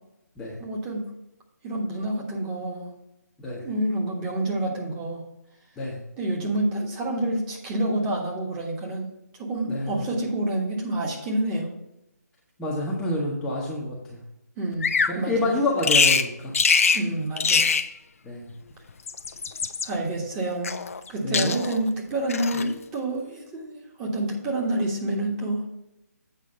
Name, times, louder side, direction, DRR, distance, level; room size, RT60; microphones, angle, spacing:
voice 1, 0.6-1.1 1.6-2.9 3.6-5.2 6.2-9.1 9.4-11.7 14.6-15.5 16.9-17.7 19.8-20.8 21.1-25.6, right 1 dB, 20° right, -2 dB, 1.5 m, -28 dB
voice 2, 9.7-10.0 12.6-14.2 15.1-16.5 18.3-18.5 21.2-21.5, left 2 dB, 5° left, -6 dB, 1.0 m, -28 dB
Bird vocalization bird call bird song, 14.8-15.2 15.8-16.3 16.5-17.0 17.4-17.9 18.9-19.9 20.6-21.1 21.3-21.8 22.3-22.7, left 5 dB, 55° left, 0.6 m, -22 dB
8.3 x 5.1 x 5.3 m, 0.90 s
figure-of-eight pair, 145°, 9 cm